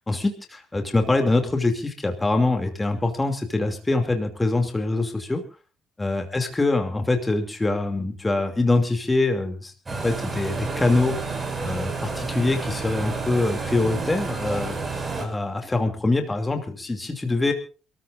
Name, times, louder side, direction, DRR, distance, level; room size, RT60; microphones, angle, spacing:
voice 1, 0.1-5.4 6.0-11.1 11.6-14.8 15.2-17.5, left 2 dB, 20° left, 5 dB, 2.7 m, -24 dB
sound 1, 9.9-15.2, right 4 dB, 25° right, 5.9 m, -30 dB
28.0 x 14.0 x 2.6 m, 0.35 s
cardioid pair, 90°, 0 cm